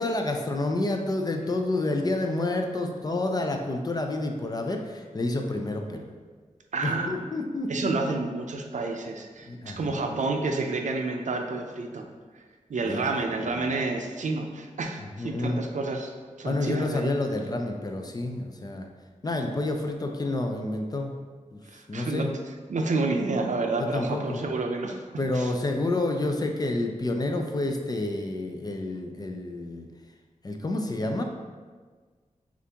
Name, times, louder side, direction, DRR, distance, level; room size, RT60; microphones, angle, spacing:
voice 1, 0.0-6.1 6.8-8.1 9.5-10.0 12.8-13.1 13.4-13.8 15.0-15.6 16.4-18.9 19.2-21.1 21.5-21.6 21.9-22.3 23.8-24.5 25.2-29.9 30.4-31.2, left 2 dB, 30° left, 3 dB, 0.4 m, -29 dB
voice 2, 6.7-7.1 7.7-12.1 12.7-16.1 16.4-17.1 21.7-22.3 22.7-25.0 25.3-25.5, right 3 dB, 70° right, 3 dB, 0.5 m, -29 dB
6.8 x 2.5 x 2.8 m, 1.5 s
wide cardioid pair, 115°, 13 cm